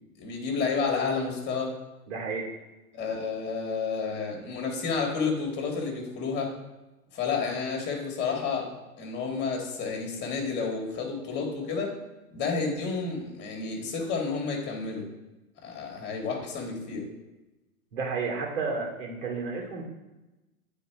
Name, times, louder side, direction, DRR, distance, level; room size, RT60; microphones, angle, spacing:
voice 1, 0.2-1.7 2.9-6.5 7.1-8.7 9.0-11.9 12.3-15.1 15.6-17.0, left 5 dB, 25° left, 1 dB, 1.9 m, -30 dB
voice 2, 2.1-2.4 17.9-19.8, right 4 dB, 55° right, -1 dB, 2.6 m, -31 dB
8.5 x 3.9 x 4.7 m, 1.1 s
hypercardioid pair, 130°, 45 cm